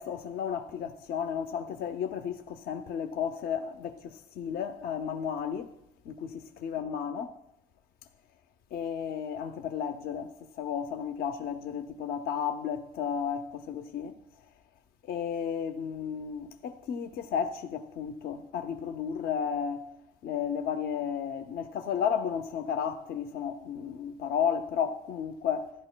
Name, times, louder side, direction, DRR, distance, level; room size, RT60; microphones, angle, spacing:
voice 1, 0.0-5.7 6.1-7.3 8.7-14.2 15.0-19.9 20.2-25.7, left 7 dB, 65° left, 0.6 m, -33 dB
14.5 x 11.0 x 2.2 m
cardioid pair, 110°, 17 cm